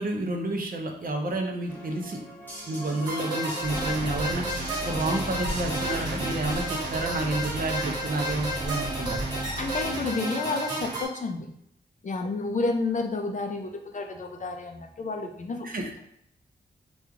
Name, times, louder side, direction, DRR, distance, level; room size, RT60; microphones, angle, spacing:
voice 1, 0.0-2.2 2.7-4.5 4.8-9.3 15.6-15.9, right 2 dB, 50° right, 3 dB, 0.6 m, -30 dB
sound 1, 1.7-7.4, equal, 10° left, 0.9 m, -42 dB
sound 2, 3.1-11.1, right 1 dB, 20° right, 1.2 m, -32 dB
sound 3, 3.6-10.1, right 1 dB, 80° right, 0.9 m, -36 dB
voice 2, 9.6-11.5 12.0-15.7, left 3 dB, 45° left, 4 dB, 0.4 m, -30 dB
3.0 x 2.3 x 3.6 m, 0.75 s
wide cardioid pair, 115°, 19 cm